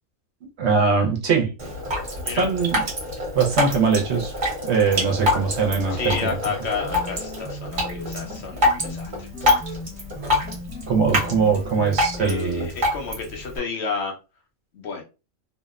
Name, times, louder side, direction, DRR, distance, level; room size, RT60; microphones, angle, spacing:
voice 1, 0.6-1.5 2.3-2.8 3.3-4.3 4.6-6.4 10.2-10.4 10.9-12.7, right 5 dB, 65° right, 0.8 m, -21 dB
Drip, 1.6-13.6, left 1 dB, 40° right, 1.0 m, -26 dB
voice 2, 5.9-9.8 12.2-14.2 14.7-15.0, left 5 dB, 65° left, 0.8 m, -31 dB
sound 1, 6.8-12.2, equal, 5° left, 0.7 m, -37 dB
2.7 x 2.0 x 2.3 m
omnidirectional pair, 1.4 m